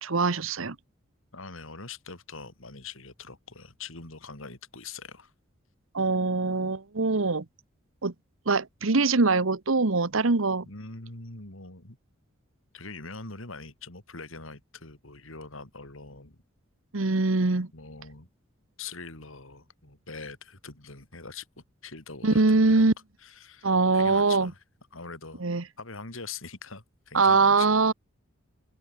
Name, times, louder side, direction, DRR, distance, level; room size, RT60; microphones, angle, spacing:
voice 1, 0.0-0.8 5.9-7.4 8.0-8.1 8.5-10.6 16.9-17.7 22.2-22.9 23.6-24.5 25.4-25.6 27.1-27.9, right 3 dB, 80° right, 1.2 m, -23 dB
voice 2, 1.3-5.3 10.7-12.0 12.7-16.4 17.7-18.3 18.8-22.9 23.2-24.6 24.9-25.4 25.8-27.7, left 4 dB, 80° left, 4.2 m, -43 dB
open air
head